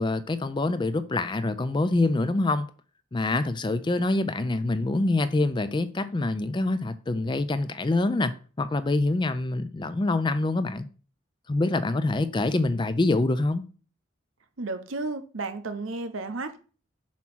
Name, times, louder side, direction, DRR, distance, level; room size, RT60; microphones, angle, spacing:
voice 1, 0.0-2.7 3.1-10.9 11.5-13.6, left 2 dB, 20° left, 0.4 m, -25 dB
voice 2, 14.6-16.6, right 3 dB, 75° right, 0.9 m, -33 dB
7.1 x 3.0 x 6.1 m
head